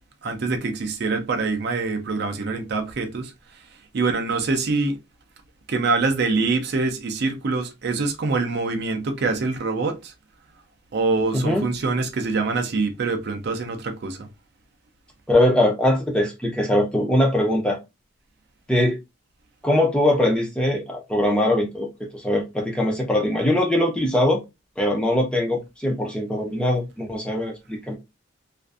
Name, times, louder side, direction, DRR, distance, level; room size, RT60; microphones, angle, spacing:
voice 1, 0.2-3.3 3.9-5.0 5.7-10.1 10.9-14.3, right 3 dB, 50° right, 0.4 m, -24 dB
voice 2, 11.3-11.7 15.3-17.8 18.7-19.0 19.6-24.4 24.8-28.0, left 1 dB, 5° left, 0.4 m, -21 dB
2.5 x 2.4 x 2.3 m
head